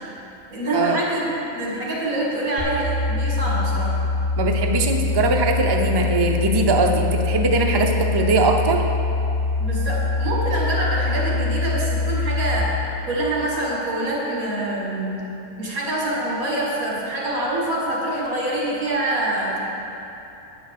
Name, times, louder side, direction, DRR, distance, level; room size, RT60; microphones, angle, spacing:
voice 1, 0.5-4.0 9.6-12.8 13.1-15.2 15.6-19.6, right 1 dB, 70° right, -5 dB, 2.6 m, -25 dB
sound 1, 2.6-12.6, left 3 dB, 50° left, 1.6 m, -23 dB
voice 2, 4.4-8.8, right 2 dB, 40° right, 2 dB, 0.3 m, -20 dB
9.3 x 6.3 x 6.6 m, 2.9 s
omnidirectional pair, 1.5 m